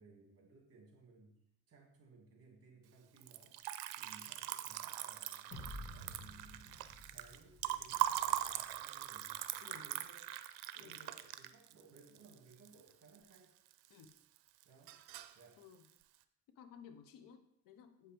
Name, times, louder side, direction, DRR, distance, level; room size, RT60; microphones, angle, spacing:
voice 1, 0.0-1.4 1.7-3.5 3.9-5.5 5.9-10.3 10.7-13.5 14.6-15.0 15.3-15.6, right 3 dB, 40° right, 1 dB, 2.3 m, -62 dB
Liquid, 3.2-13.4 13.7-14.4 14.6-15.4, right 14 dB, 80° right, 0.6 m, -41 dB
sound 1, 5.5-8.8, left 1 dB, 40° left, 1.5 m, -52 dB
voice 2, 16.6-18.1, left 7 dB, 60° left, 8 dB, 0.8 m, -57 dB
8.0 x 5.2 x 4.5 m, 0.76 s
cardioid pair, 130°, 37 cm